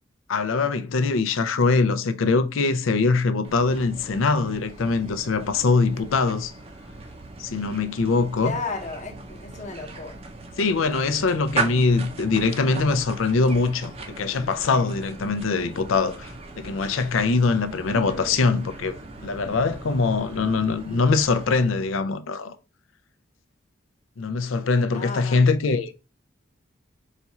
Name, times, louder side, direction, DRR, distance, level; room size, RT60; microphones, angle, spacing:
voice 1, 0.3-6.5 7.4-8.6 10.6-16.3 16.6-18.9 19.2-22.6 24.2-25.9, left 4 dB, 90° left, 0.5 m, -22 dB
sound 1, 3.4-22.1, right 4 dB, 30° right, 0.6 m, -38 dB
voice 2, 8.4-10.2 17.9-18.4 24.9-25.4, left 3 dB, 35° left, 0.9 m, -34 dB
4.1 x 2.4 x 4.1 m
head